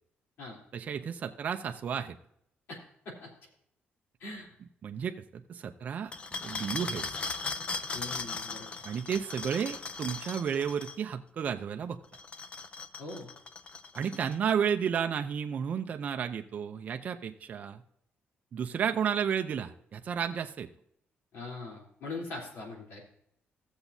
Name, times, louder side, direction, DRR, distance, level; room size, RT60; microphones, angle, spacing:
voice 1, 0.7-2.2 4.8-6.1 6.4-7.1 8.8-12.0 13.9-17.8 18.5-20.7, right 7 dB, 40° right, 6 dB, 0.5 m, -32 dB
sound 1, 6.1-11.0 12.0-14.5, left 4 dB, 30° left, 0.5 m, -38 dB
voice 2, 7.9-8.7 13.0-13.3 21.3-23.0, left 3 dB, 75° left, -1 dB, 3.3 m, -41 dB
16.0 x 7.1 x 2.7 m, 0.73 s
cardioid pair, 170°, 4 cm